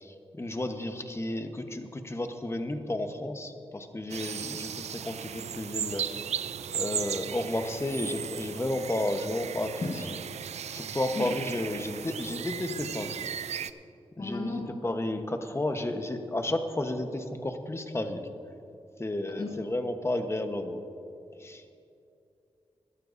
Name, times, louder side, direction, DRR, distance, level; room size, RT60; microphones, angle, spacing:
voice 1, 0.0-6.1 6.7-10.0 10.7-13.2 14.2-18.3 19.0-20.8 21.4-21.6, left 1 dB, 25° left, 6 dB, 1.1 m, -32 dB
sound 1, 4.1-13.7, right 8 dB, 80° right, 0.4 m, -36 dB
voice 2, 14.2-14.7 19.3-19.5, left 3 dB, 45° left, -1 dB, 1.4 m, -34 dB
20.5 x 12.0 x 2.7 m, 2.6 s
cardioid pair, 65°, 11 cm